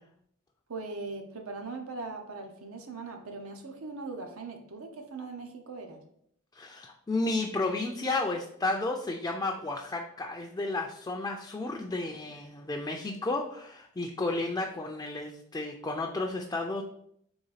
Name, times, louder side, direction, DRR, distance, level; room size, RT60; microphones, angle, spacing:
voice 1, 0.7-6.0 12.1-12.3, right 3 dB, 75° right, 4 dB, 0.8 m, -40 dB
voice 2, 6.5-16.8, left 2 dB, 15° left, 1 dB, 0.3 m, -32 dB
4.0 x 3.4 x 3.9 m, 0.69 s
head